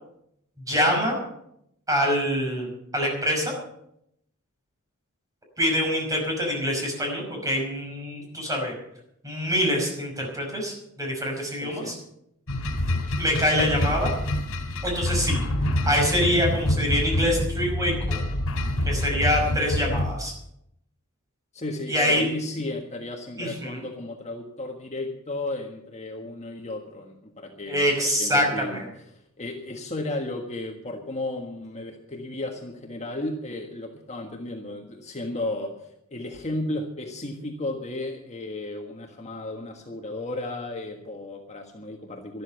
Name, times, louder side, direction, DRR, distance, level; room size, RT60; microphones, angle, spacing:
voice 1, 0.7-1.2 1.9-3.5 5.6-8.7 9.2-11.9 13.2-14.1 14.8-15.4 15.9-18.2 18.8-20.3 21.9-22.3 23.4-23.9 27.7-28.9, equal, 15° right, 0 dB, 5.6 m, -25 dB
voice 2, 11.6-12.0 21.5-27.9 28.2-28.8 29.1-42.4, left 2 dB, 30° left, 2 dB, 1.5 m, -34 dB
sound 1, 12.5-20.1, left 1 dB, 80° left, 3.2 m, -26 dB
13.0 x 12.5 x 7.0 m, 0.77 s
head